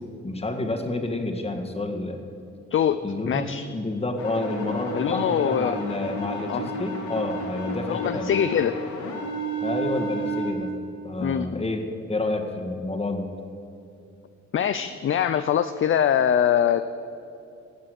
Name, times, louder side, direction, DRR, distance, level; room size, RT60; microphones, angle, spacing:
voice 1, 0.2-2.2 3.0-3.5 3.7-8.3 9.6-10.7 11.0-11.8 12.1-13.3, left 2 dB, 20° left, 3 dB, 1.9 m, -29 dB
voice 2, 2.7-3.7 4.9-5.8 6.5-6.7 7.9-8.8 11.2-11.7 14.5-16.8, left 9 dB, 45° left, 11 dB, 0.5 m, -23 dB
sound 1, 4.2-10.5, right 2 dB, 75° left, 2.7 m, -31 dB
17.5 x 7.4 x 7.9 m, 2.6 s
cardioid pair, 90°, 30 cm